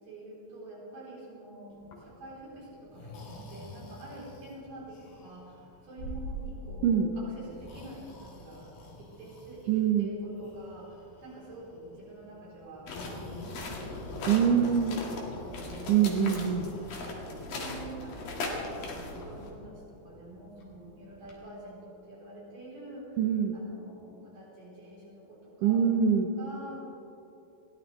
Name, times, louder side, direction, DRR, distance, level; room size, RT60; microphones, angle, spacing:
voice 1, 0.0-8.7 9.0-16.0 16.7-23.2 23.5-25.9 26.4-26.9, right 2 dB, 60° right, -7 dB, 5.4 m, -47 dB
Breathing, 1.7-21.4, equal, 90° left, 4.7 m, -48 dB
voice 2, 9.7-10.1 14.3-15.0 15.9-16.7 23.2-23.6 25.6-26.3, right 8 dB, 80° right, 4 dB, 1.9 m, -24 dB
sound 1, 12.9-19.5, left 2 dB, 70° left, 3.8 m, -38 dB
22.0 x 17.0 x 3.3 m, 3.0 s
omnidirectional pair, 4.4 m